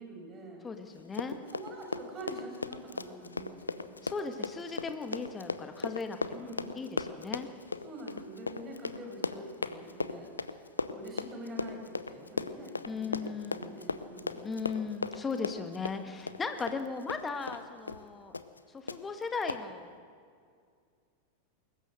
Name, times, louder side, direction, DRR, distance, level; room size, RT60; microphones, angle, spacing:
voice 1, 0.0-0.6 1.4-3.9 6.3-6.8 7.8-10.3 10.9-14.4, right 1 dB, 25° right, 1 dB, 5.9 m, -45 dB
voice 2, 0.6-1.4 4.0-7.5 12.9-13.8 14.4-18.3 18.7-19.9, left 4 dB, 15° left, 7 dB, 1.7 m, -37 dB
Run, 1.0-17.6 17.9-18.0 18.3-18.6 18.9-19.0 19.5-19.6, left 4 dB, 80° left, 0.7 m, -37 dB
22.0 x 19.0 x 6.5 m, 2.2 s
figure-of-eight pair, 90°, 0 cm